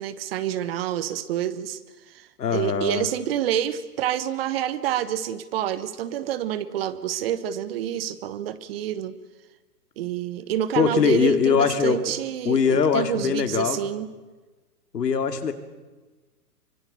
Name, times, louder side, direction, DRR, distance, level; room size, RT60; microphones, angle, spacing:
voice 1, 0.0-1.8 2.1-9.2 10.0-14.1, right 10 dB, 40° right, 15 dB, 1.2 m, -28 dB
voice 2, 2.4-3.1 10.8-12.0 12.4-13.8 14.9-15.5, left 6 dB, 80° left, 8 dB, 2.6 m, -22 dB
24.5 x 22.5 x 6.9 m, 1.2 s
hypercardioid pair, 145°, 48 cm